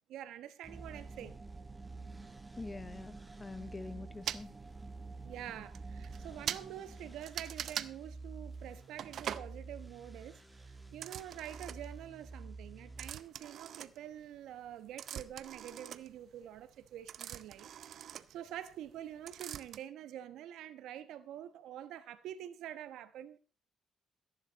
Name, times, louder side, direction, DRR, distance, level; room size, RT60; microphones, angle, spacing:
voice 1, 0.1-1.4 5.2-17.7 17.9-23.4, right 11 dB, 85° right, 1.2 m, -47 dB
sound 1, 0.6-13.1, right 3 dB, 10° right, 1.9 m, -50 dB
sound 2, 0.7-7.2, right 3 dB, 25° right, 1.1 m, -52 dB
voice 2, 2.6-4.6, left 3 dB, 20° left, 0.8 m, -45 dB
sound 3, 4.3-4.4 5.3-5.4 5.7-5.8 6.0-6.2 6.5-6.6 7.2-7.9 9.0-9.5 10.9-12.0 13.0-14.4 14.7-19.0 19.3-19.8, right 9 dB, 65° right, 0.7 m, -42 dB
14.5 x 10.5 x 4.2 m
cardioid pair, 90°, 0 cm